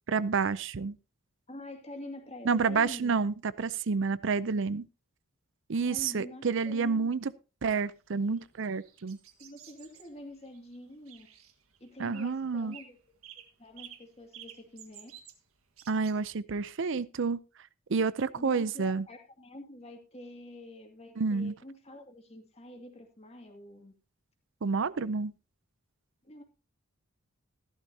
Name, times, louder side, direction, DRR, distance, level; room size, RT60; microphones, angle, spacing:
voice 1, 0.1-1.0 2.4-4.8 5.7-7.3 7.6-9.2 12.0-12.8 15.9-17.4 17.9-19.1 21.2-21.5 24.6-25.3, right 5 dB, 60° right, 0.5 m, -29 dB
voice 2, 1.5-3.1 5.7-7.1 9.4-11.3 11.8-13.0 13.6-15.1 18.3-23.9 26.2-26.4, left 1 dB, 30° left, 2.3 m, -46 dB
sound 1, 7.8-16.1, right 10 dB, 85° right, 1.6 m, -52 dB
14.5 x 12.0 x 2.8 m
head